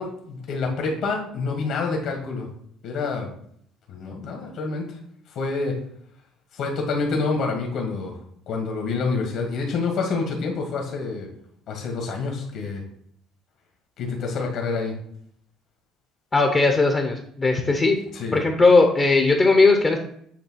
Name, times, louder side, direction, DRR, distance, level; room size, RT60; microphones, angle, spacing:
voice 1, 0.0-2.5 2.8-3.3 3.9-4.8 5.3-5.7 6.5-8.1 8.5-11.3 11.7-12.8 14.0-14.9 18.1-18.4, left 4 dB, 55° left, 1 dB, 1.7 m, -27 dB
voice 2, 16.3-18.0 18.3-20.0, left 3 dB, 20° left, 3 dB, 0.7 m, -18 dB
8.5 x 3.3 x 6.2 m, 0.66 s
cardioid pair, 175°, 0 cm